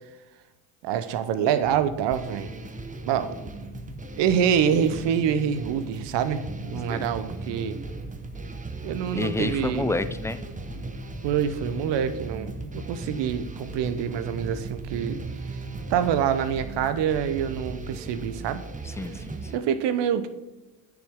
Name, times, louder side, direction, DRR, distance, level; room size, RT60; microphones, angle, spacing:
voice 1, 0.8-2.5 3.1-3.3 4.2-6.4 6.7-7.8 8.8-10.0 11.2-15.2 15.9-18.6 19.5-20.3, right 8 dB, 60° right, 11 dB, 0.9 m, -26 dB
sound 1, 1.6-16.7, right 1 dB, 35° left, 2.7 m, -41 dB
sound 2, 2.1-19.6, right 3 dB, 15° right, 1.0 m, -39 dB
voice 2, 9.1-10.4 18.8-19.5, left 2 dB, 5° left, 12 dB, 0.4 m, -29 dB
8.7 x 7.1 x 3.6 m, 1.1 s
hypercardioid pair, 60°, 48 cm